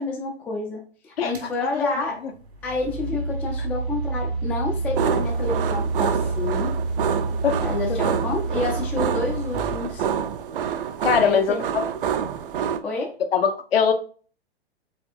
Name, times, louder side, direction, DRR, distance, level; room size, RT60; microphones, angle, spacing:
voice 1, 0.0-2.2 2.6-6.7 7.6-10.1 11.1-11.7 12.8-13.1, left 3 dB, 5° left, 0.3 m, -29 dB
sound 1, 1.3-1.5 2.4-10.5, right 3 dB, 75° right, 1.5 m, -28 dB
voice 2, 1.6-2.3 7.4-7.6 7.9-8.0 11.0-11.8 13.3-13.9, left 7 dB, 65° left, 0.8 m, -22 dB
sound 2, 5.0-12.8, right 8 dB, 55° right, 0.5 m, -27 dB
4.4 x 3.4 x 2.5 m
figure-of-eight pair, 110°, 32 cm